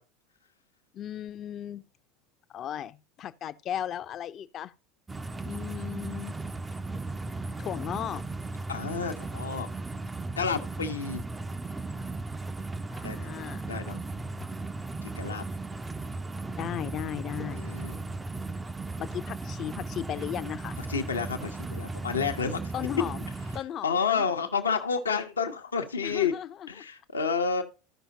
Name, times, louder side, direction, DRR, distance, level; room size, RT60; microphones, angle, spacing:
voice 1, 0.9-1.8 2.5-4.7 5.4-6.3 7.6-8.2 12.9-13.7 14.4-14.5 16.6-17.7 19.0-20.8 22.7-23.3 23.5-24.4 26.0-26.7, left 10 dB, 40° left, 0.5 m, -36 dB
sound 1, 5.1-23.6, right 3 dB, 15° right, 0.5 m, -36 dB
voice 2, 8.7-9.7 10.4-11.2 13.0-13.2 13.7-14.0 15.0-15.4 17.5-18.0 20.9-22.6 23.8-26.3 26.7-27.6, left 6 dB, 85° left, 0.8 m, -30 dB
14.0 x 5.6 x 2.8 m
hypercardioid pair, 80°, 0 cm